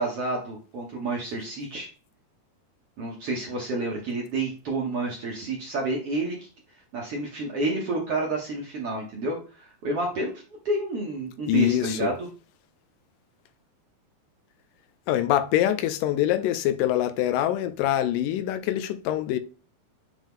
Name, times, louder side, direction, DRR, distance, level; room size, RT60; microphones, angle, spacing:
voice 1, 0.0-1.9 3.0-6.5 6.9-10.3 10.6-12.1, right 2 dB, 60° right, 1.5 m, -29 dB
voice 2, 11.5-12.1 15.1-19.4, left 12 dB, 80° left, 2.0 m, -24 dB
7.6 x 3.6 x 3.6 m
omnidirectional pair, 4.4 m